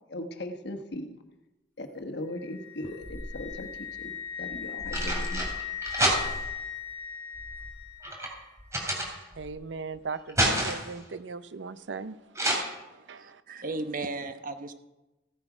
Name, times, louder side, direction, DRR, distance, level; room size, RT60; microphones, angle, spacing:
voice 1, 0.1-1.2 1.8-5.5, left 1 dB, 65° left, 1.2 m, -38 dB
Wind instrument woodwind instrument, 2.4-8.3, left 8 dB, 10° left, 2.4 m, -38 dB
sound 1, 2.8-3.6 4.5-6.6 7.3-9.6 10.0-11.0 12.4-12.6, right 1 dB, 15° right, 2.8 m, -29 dB
voice 2, 9.4-12.2 13.1-13.4, right 4 dB, 75° right, 0.6 m, -38 dB
voice 3, 12.9-14.7, right 3 dB, 50° right, 0.9 m, -36 dB
15.0 x 9.7 x 5.0 m
head